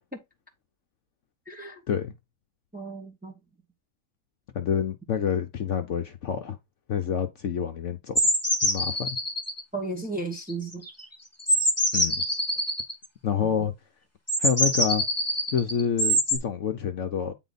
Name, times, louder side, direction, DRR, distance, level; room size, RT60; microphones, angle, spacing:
voice 1, 1.5-1.8 2.7-3.3 9.7-10.8 13.4-13.7, right 3 dB, 5° right, 1.3 m, -34 dB
voice 2, 4.5-6.6 6.9-8.2 8.6-9.2 11.9-12.2 13.2-13.7 14.4-15.0 15.5-17.3, left 8 dB, 60° left, 1.0 m, -27 dB
sound 1, 8.2-9.6 10.4-11.0 11.4-12.9 14.3-16.4, equal, 10° left, 1.6 m, -24 dB
9.1 x 4.1 x 4.0 m
omnidirectional pair, 1.6 m